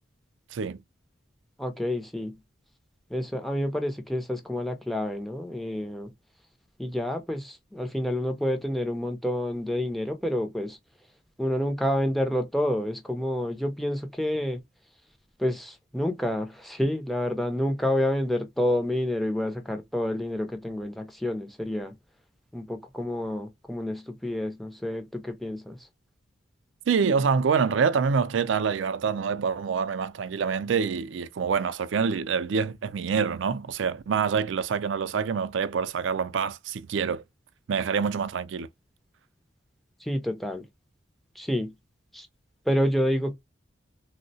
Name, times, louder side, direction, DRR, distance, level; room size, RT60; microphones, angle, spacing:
voice 1, 1.6-2.4 3.1-6.1 6.8-10.8 11.4-14.6 15.4-21.9 22.5-25.9 40.0-40.7 41.4-41.7 42.1-42.3 42.7-43.3, left 1 dB, ahead, 0.4 m, -28 dB
voice 2, 26.9-37.2 37.7-38.7, right 6 dB, 75° right, 0.4 m, -26 dB
3.6 x 2.1 x 2.6 m
head